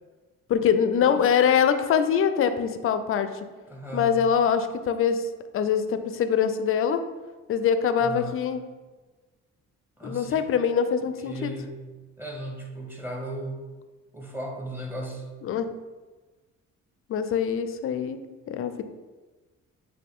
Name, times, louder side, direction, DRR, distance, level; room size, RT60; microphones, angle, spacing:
voice 1, 0.5-3.3 3.9-5.2 5.5-7.0 7.5-8.6 10.0-11.5 15.4-15.7 17.1-18.8, left 7 dB, 45° left, 9 dB, 0.4 m, -23 dB
voice 2, 3.7-4.2 8.0-8.4 10.0-10.5 11.2-11.9 12.2-13.6 14.1-15.2, right 1 dB, 5° right, 0 dB, 0.8 m, -36 dB
5.3 x 2.2 x 3.6 m, 1.3 s
cardioid pair, 90°, 30 cm